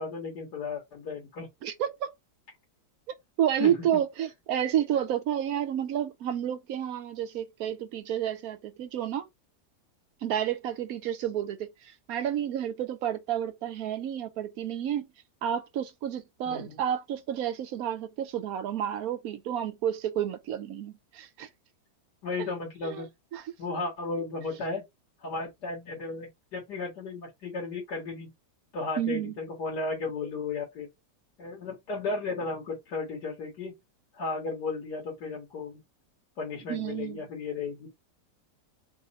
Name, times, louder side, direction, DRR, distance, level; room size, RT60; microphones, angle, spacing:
voice 1, 0.0-1.5 3.6-3.9 16.5-16.8 22.2-23.1 23.6-24.8 25.2-28.3 28.7-30.9 31.4-33.7 34.1-35.8 36.4-37.9, left 3 dB, 90° left, 2.0 m, -34 dB
voice 2, 1.6-2.1 3.4-9.3 10.2-15.1 15.4-21.5 22.8-23.1 23.3-23.4 29.0-29.3 36.7-37.2, right 10 dB, 70° right, 1.0 m, -30 dB
4.1 x 2.5 x 4.0 m
omnidirectional pair, 1.7 m